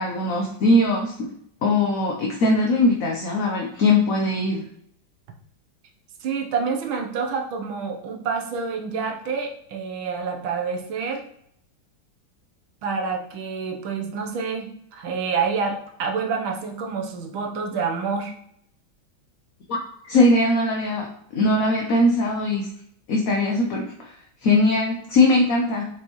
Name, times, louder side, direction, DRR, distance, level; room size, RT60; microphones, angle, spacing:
voice 1, 0.0-1.3 1.6-4.6 19.7-19.8 20.0-21.1 21.3-22.7 23.1-25.9, left 2 dB, 55° left, 0 dB, 1.1 m, -20 dB
voice 2, 6.2-11.2 12.8-18.3, right 5 dB, 85° right, 2 dB, 1.8 m, -28 dB
7.2 x 5.1 x 3.1 m, 0.69 s
omnidirectional pair, 2.2 m